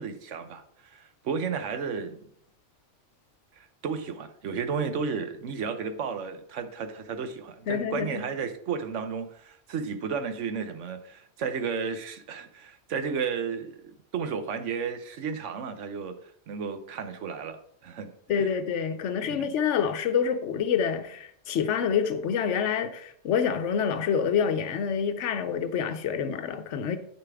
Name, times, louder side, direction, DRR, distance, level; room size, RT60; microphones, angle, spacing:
voice 1, 0.0-2.2 3.6-16.2 16.5-18.1 18.4-18.5 19.2-19.5, right 6 dB, 80° right, 1.2 m, -33 dB
voice 2, 7.7-8.2 18.3-27.0, left 7 dB, 75° left, 1.1 m, -27 dB
8.4 x 6.6 x 3.5 m
omnidirectional pair, 1.3 m